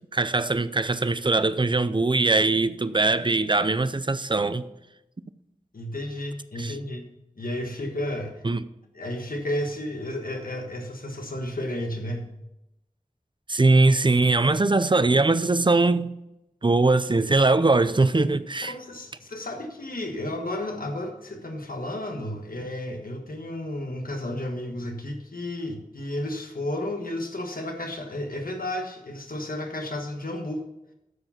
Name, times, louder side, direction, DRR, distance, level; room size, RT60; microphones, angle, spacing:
voice 1, 0.1-4.6 6.6-6.8 8.4-8.6 13.5-16.1 16.6-18.7, right 3 dB, 35° right, 0.5 m, -21 dB
voice 2, 5.7-7.1 7.4-8.4 8.9-12.3 18.7-30.6, left 1 dB, 80° left, 1.4 m, -32 dB
13.0 x 4.9 x 5.7 m
wide cardioid pair, 50°, 15 cm